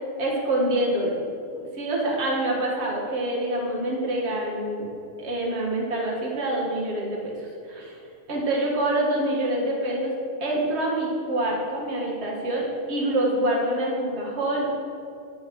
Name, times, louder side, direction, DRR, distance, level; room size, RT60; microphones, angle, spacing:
voice 1, 0.2-1.2 1.7-4.9 5.2-8.0 8.3-10.1 10.4-14.7, right 1 dB, 40° right, -3 dB, 0.9 m, -26 dB
12.5 x 9.9 x 3.1 m, 2.6 s
omnidirectional pair, 4.0 m